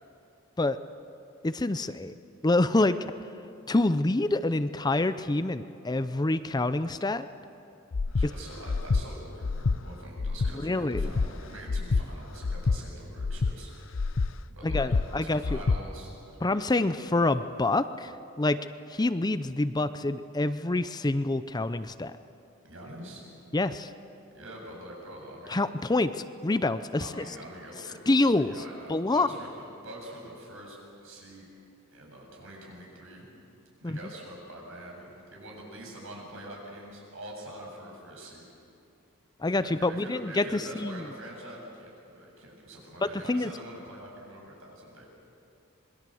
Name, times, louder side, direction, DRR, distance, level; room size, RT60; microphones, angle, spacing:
voice 1, 1.4-2.1 2.4-3.0 3.7-7.3 10.6-11.1 14.6-15.6 16.4-18.1 18.4-18.6 18.9-22.1 23.5-23.9 25.5-27.2 28.1-28.5 28.9-29.3 33.8-34.0 39.4-41.0 43.3-43.5, left 2 dB, 20° left, 12 dB, 0.6 m, -26 dB
Breathing, 7.9-8.3 8.7-9.0 9.4-9.8 10.2-10.5 10.9-11.3 11.7-12.0 12.4-12.8 13.2-13.5 13.9-14.3 14.7-15.0 15.4-15.8, left 4 dB, 75° left, 0.6 m, -27 dB
voice 2, 8.1-13.7 14.5-16.7 17.1-17.3 22.6-23.2 24.3-25.6 27.0-31.5 31.9-33.3 33.8-38.5 39.6-45.1, right 1 dB, 75° right, -1 dB, 8.0 m, -45 dB
27.0 x 21.5 x 7.8 m, 2.6 s
head